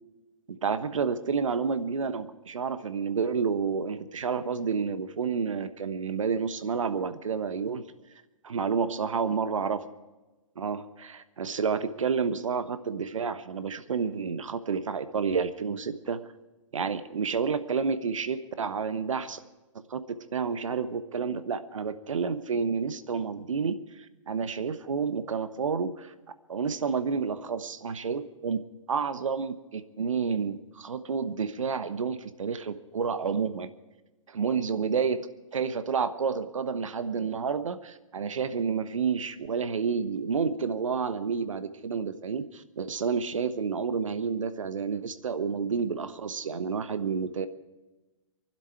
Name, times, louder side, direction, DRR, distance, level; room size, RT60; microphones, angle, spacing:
voice 1, 0.5-7.8 8.4-9.9 10.6-16.2 16.7-19.4 19.7-26.1 26.5-28.6 28.9-33.7 34.3-35.2 35.5-47.5, right 5 dB, 70° right, 11 dB, 1.2 m, -30 dB
24.0 x 12.0 x 4.6 m, 1.1 s
hypercardioid pair, 135°, 17 cm